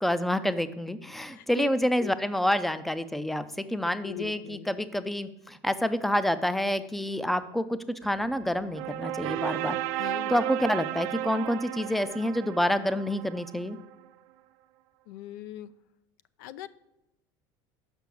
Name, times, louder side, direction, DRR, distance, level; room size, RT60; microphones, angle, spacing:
voice 1, 0.0-9.8 10.3-13.8, left 1 dB, ahead, 13 dB, 0.4 m, -28 dB
voice 2, 1.2-1.7 2.0-2.1 4.0-4.7 10.0-10.5 15.1-15.7 16.4-16.7, left 12 dB, 90° left, 17 dB, 0.4 m, -39 dB
sound 1, 8.0-13.9, right 13 dB, 70° right, 0.5 m, -34 dB
6.1 x 5.7 x 6.9 m, 0.92 s
cardioid pair, 140°, 10 cm